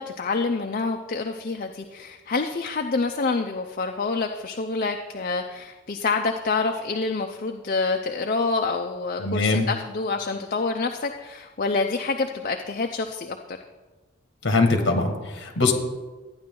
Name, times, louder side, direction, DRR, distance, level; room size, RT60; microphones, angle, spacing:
voice 1, 0.0-13.6, left 4 dB, 45° left, 4 dB, 0.5 m, -27 dB
voice 2, 9.2-9.7 14.4-15.7, left 3 dB, 60° left, 5 dB, 1.7 m, -22 dB
13.0 x 9.6 x 3.8 m, 1.3 s
head